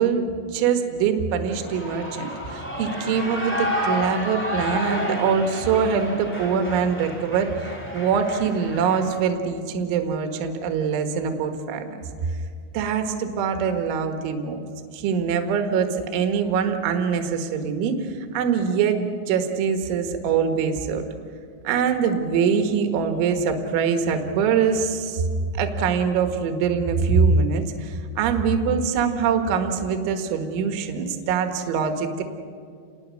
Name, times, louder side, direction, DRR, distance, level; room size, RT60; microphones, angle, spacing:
voice 1, 0.0-7.5 7.9-12.3 12.7-14.7 14.9-21.0 21.7-25.2 25.5-32.2, right 6 dB, 75° right, 6 dB, 3.7 m, -23 dB
Shout / Cheering, 1.5-9.2, left 1 dB, 5° left, 1.0 m, -30 dB
29.0 x 21.0 x 6.4 m, 2.2 s
omnidirectional pair, 5.8 m